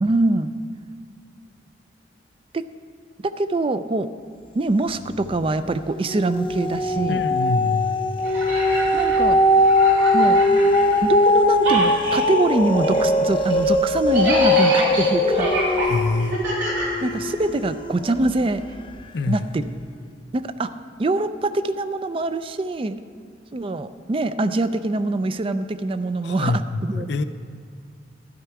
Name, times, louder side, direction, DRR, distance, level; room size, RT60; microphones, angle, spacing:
voice 1, 0.0-0.5 2.5-2.6 3.2-4.1 4.5-7.2 8.9-9.4 10.1-10.4 11.0-15.5 17.0-18.6 19.3-19.7 20.3-23.0 23.5-27.1, right 2 dB, 30° right, 12 dB, 0.4 m, -24 dB
sound 1, 5.0-5.5 5.9-18.4 18.9-19.0, left 1 dB, 30° left, 0.6 m, -20 dB
voice 2, 7.1-8.1 15.9-16.4 19.1-19.4 26.2-27.2, left 3 dB, 70° left, 11 dB, 0.5 m, -25 dB
sound 2, 8.2-11.3 11.6-17.6, right 1 dB, 80° right, 3.2 m, -28 dB
12.5 x 10.5 x 4.7 m, 2.3 s
head